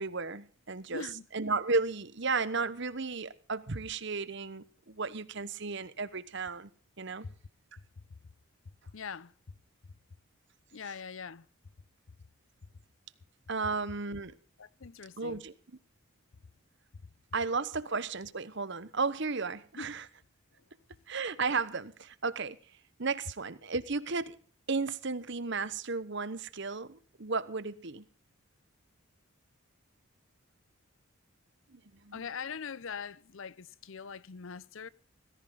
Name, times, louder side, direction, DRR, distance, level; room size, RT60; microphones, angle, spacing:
voice 1, 0.0-1.0 1.3-6.7 7.0-7.2 13.5-14.3 15.2-15.5 17.3-20.0 21.1-22.6 23.0-24.4 24.7-28.0 31.7-32.2, right 4 dB, 55° right, 1.0 m, -34 dB
voice 2, 0.9-1.3 7.2-7.4 8.9-9.6 10.7-11.5 14.1-14.2 14.6-15.5 19.8-19.9 32.1-34.9, left 6 dB, 65° left, 0.6 m, -42 dB
18.0 x 16.0 x 3.9 m
head